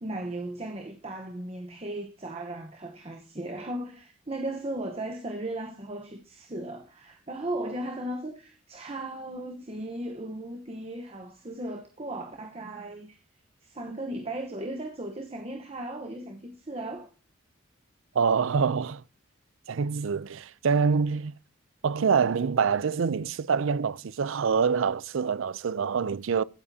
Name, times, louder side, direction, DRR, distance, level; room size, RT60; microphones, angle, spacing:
voice 1, 0.0-13.2 13.6-17.1, right 1 dB, 30° right, 1.0 m, -36 dB
voice 2, 18.1-19.0 19.7-21.3 21.8-26.4, right 5 dB, 75° right, 0.4 m, -25 dB
15.5 x 8.6 x 2.8 m
head